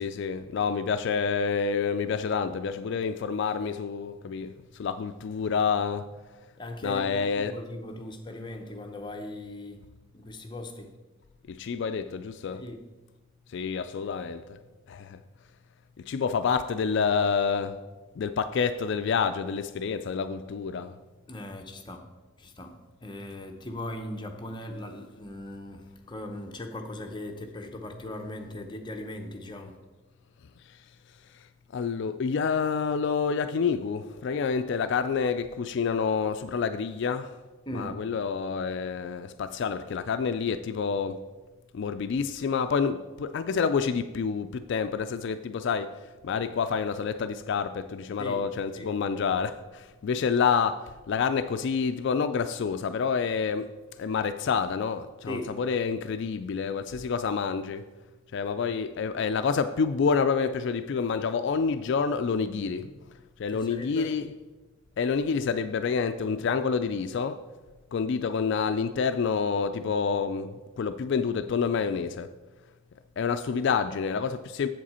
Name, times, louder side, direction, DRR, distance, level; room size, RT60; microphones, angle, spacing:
voice 1, 0.0-6.1 6.8-7.6 11.5-12.6 13.5-14.6 14.9-15.2 16.1-17.8 18.2-21.0 30.7-30.8 31.3-31.4 31.7-37.4 37.7-41.2 41.7-45.9 46.2-53.7 54.0-57.9 58.3-62.9 63.4-64.3 65.0-67.4 67.9-72.3 73.2-74.7, left 5 dB, 55° left, 0.3 m, -28 dB
voice 2, 6.6-9.9 10.1-10.9 12.6-12.8 21.3-22.0 22.4-29.8 37.7-38.0 48.2-48.4 48.7-48.9 55.3-55.5 63.5-64.1, left 1 dB, 20° left, 0.7 m, -39 dB
7.5 x 7.5 x 4.2 m
head